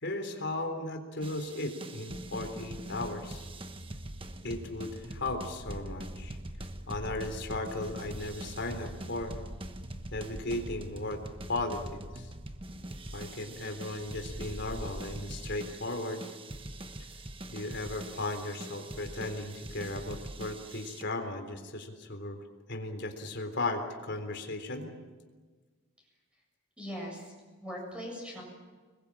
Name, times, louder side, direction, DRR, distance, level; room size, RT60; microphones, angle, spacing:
voice 1, 0.0-3.4 4.4-6.4 6.9-9.4 10.1-11.2 11.5-12.3 13.1-16.2 17.5-22.4 22.7-24.9, left 2 dB, 50° left, 5 dB, 3.6 m, -36 dB
sound 1, 1.2-21.0, right 1 dB, 25° right, 1.2 m, -43 dB
sound 2, 3.9-15.2, equal, 25° left, 4.6 m, -47 dB
voice 2, 26.8-27.3 27.6-28.4, equal, 5° right, -1 dB, 7.5 m, -40 dB
26.0 x 22.0 x 8.8 m, 1.4 s
head